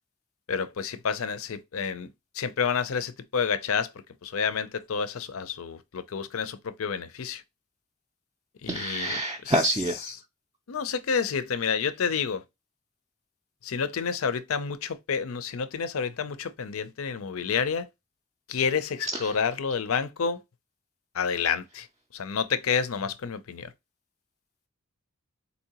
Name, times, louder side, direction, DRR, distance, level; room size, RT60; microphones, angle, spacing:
voice 1, 0.5-2.1 2.3-3.9 4.2-7.4 8.6-9.2 9.5-9.6 10.7-12.4 13.6-17.9 18.5-20.4 21.1-21.9 22.1-23.7, left 6 dB, 70° left, 0.5 m, -29 dB
voice 2, 8.7-10.1 19.1-19.3, right 1 dB, 20° right, 0.4 m, -27 dB
4.2 x 2.7 x 2.8 m
head